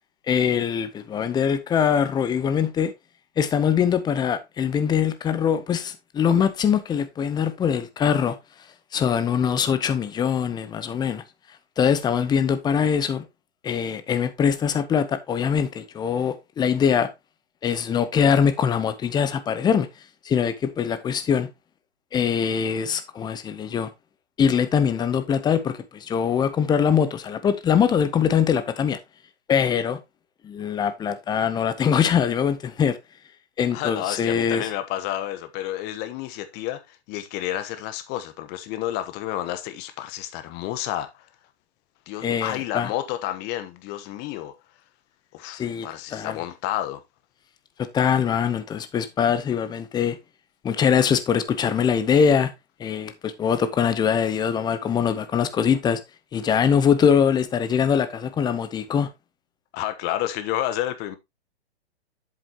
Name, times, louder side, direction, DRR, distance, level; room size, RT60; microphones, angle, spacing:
voice 1, 0.3-2.9 3.4-8.4 8.9-11.2 11.8-13.2 13.6-17.1 17.6-19.9 20.2-21.5 22.1-23.9 24.4-29.0 29.5-30.0 30.4-33.0 33.6-34.7 42.2-42.9 45.6-46.4 47.9-50.2 50.6-52.5 52.8-56.0 56.3-59.1, left 7 dB, 10° left, 0.7 m, -22 dB
voice 2, 33.7-41.3 42.1-44.5 45.3-47.0 59.7-61.2, left 13 dB, 30° left, 1.1 m, -30 dB
7.8 x 7.5 x 2.9 m
hypercardioid pair, 125°, 34 cm